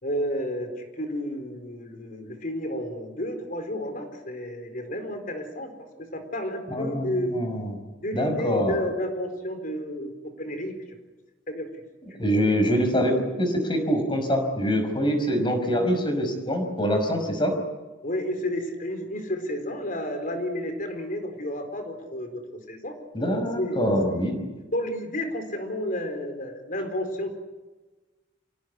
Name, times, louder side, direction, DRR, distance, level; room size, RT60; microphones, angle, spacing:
voice 1, 0.0-5.7 6.0-7.4 8.0-10.1 10.4-10.7 11.5-11.7 12.1-12.6 15.6-15.7 18.0-22.4 22.7-23.0 23.5-24.0 24.7-27.3, equal, 45° left, 6 dB, 4.4 m, -31 dB
voice 2, 6.7-7.7 8.1-8.8 12.2-17.6 23.1-24.4, equal, 25° left, 5 dB, 5.4 m, -24 dB
26.5 x 17.5 x 9.8 m, 1.2 s
head